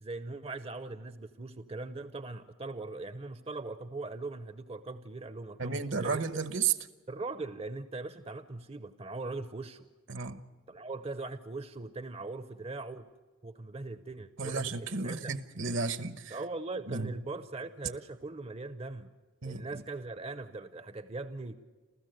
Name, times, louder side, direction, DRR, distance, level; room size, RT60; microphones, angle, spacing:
voice 1, 0.0-6.3 7.1-9.9 10.7-13.1 13.4-15.3 16.3-19.1 19.4-21.6, right 3 dB, 30° right, 0.7 m, -40 dB
voice 2, 5.6-6.7 10.1-10.4 14.4-16.4 16.9-17.1 19.4-19.8, right 5 dB, 65° right, 1.1 m, -33 dB
29.5 x 14.0 x 7.9 m
head